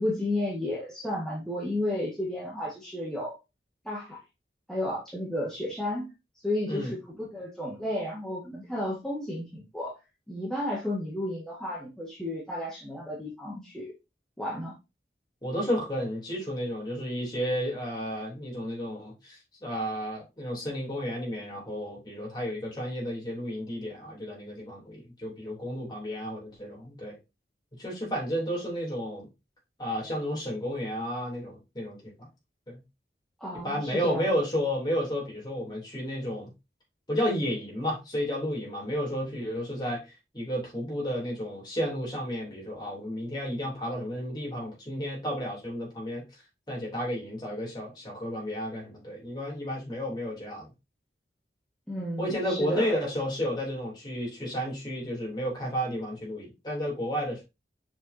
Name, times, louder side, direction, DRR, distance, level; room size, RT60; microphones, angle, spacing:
voice 1, 0.0-3.4 3.8-4.2 4.7-6.1 6.4-9.9 10.3-13.9 14.4-14.7 33.4-34.2 51.9-53.0, left 1 dB, 5° left, 1.6 m, -32 dB
voice 2, 15.4-27.2 27.8-29.3 29.8-32.1 32.7-32.8 33.6-36.5 37.1-40.0 40.3-46.2 46.7-50.7 52.2-57.4, equal, 25° left, 3.1 m, -32 dB
7.2 x 4.9 x 2.7 m
head